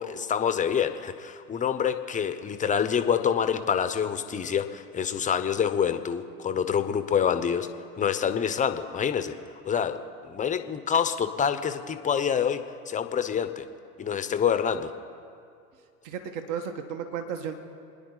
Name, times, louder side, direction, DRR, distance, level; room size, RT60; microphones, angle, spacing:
voice 1, 0.0-7.7 8.0-9.4 9.7-13.6 14.0-14.9, left 7 dB, 15° left, 10 dB, 0.9 m, -27 dB
voice 2, 16.0-17.6, right 7 dB, 45° right, 6 dB, 1.6 m, -33 dB
28.0 x 10.0 x 4.0 m, 2.4 s
hypercardioid pair, 100°, 45 cm